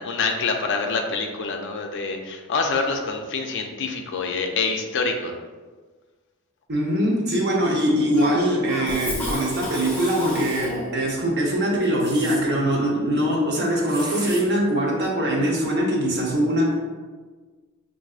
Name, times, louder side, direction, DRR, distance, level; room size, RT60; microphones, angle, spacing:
voice 1, 0.0-5.3, left 4 dB, 55° left, 3 dB, 0.4 m, -26 dB
voice 2, 6.7-16.7, equal, 50° right, -2 dB, 0.9 m, -22 dB
Cough, 8.1-11.1, left 1 dB, 10° left, 0.9 m, -32 dB
sound 1, 9.7-10.2 11.8-12.4 13.9-14.4, right 1 dB, 15° right, 0.6 m, -35 dB
5.9 x 2.6 x 2.4 m, 1.4 s
head